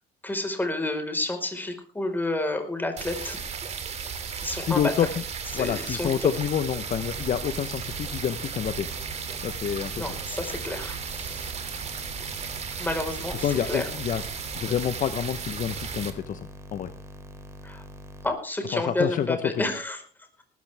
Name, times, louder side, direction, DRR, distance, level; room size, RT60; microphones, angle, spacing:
voice 1, 0.2-3.4 4.4-4.8 5.5-6.3 10.0-11.5 12.8-13.9 17.6-17.8 18.2-20.4, left 2 dB, 10° left, 5 dB, 4.7 m, -30 dB
sound 1, 3.0-16.1, right 6 dB, 40° right, 2.8 m, -35 dB
voice 2, 4.7-5.1 5.5-8.9 9.4-10.1 13.4-14.2 14.6-16.9 18.7-19.3, left 9 dB, 50° left, 11 dB, 1.0 m, -28 dB
sound 2, 6.8-18.3, equal, 15° right, 3.0 m, -44 dB
19.0 x 14.0 x 3.5 m, 0.40 s
cardioid pair, 110°, 17 cm